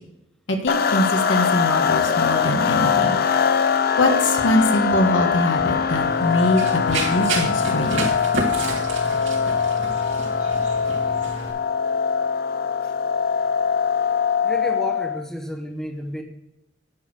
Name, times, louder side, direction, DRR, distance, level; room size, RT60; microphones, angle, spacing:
voice 1, 0.5-3.2 4.0-8.1, left 1 dB, 80° left, 4 dB, 1.5 m, -23 dB
sound 1, 0.7-15.2, left 6 dB, 50° left, 0.6 m, -22 dB
Run, 5.9-11.5, right 3 dB, 85° right, 2.7 m, -30 dB
voice 2, 14.4-16.2, equal, 5° left, 3 dB, 0.9 m, -31 dB
10.5 x 6.3 x 4.9 m, 0.90 s
head